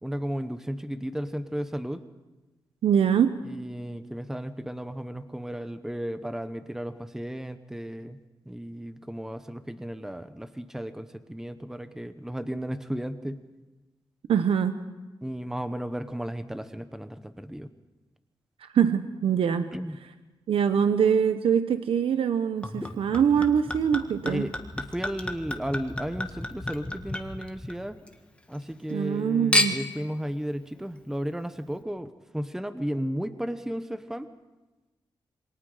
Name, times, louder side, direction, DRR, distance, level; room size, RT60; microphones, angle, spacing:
voice 1, 0.0-2.0 3.6-8.2 8.5-13.4 15.2-17.7 19.7-20.0 24.3-28.0 28.5-34.3, equal, 5° right, 10 dB, 0.9 m, -34 dB
voice 2, 2.8-3.4 14.3-14.8 18.6-19.7 20.5-24.5 28.9-29.8, right 8 dB, 85° right, 9 dB, 0.9 m, -23 dB
Chink clink / Liquid, 22.6-28.1 28.5-29.2 29.5-30.0 30.8-30.9, left 1 dB, 10° left, 1.8 m, -31 dB
27.5 x 22.5 x 5.0 m, 1.1 s
wide cardioid pair, 100°, 9 cm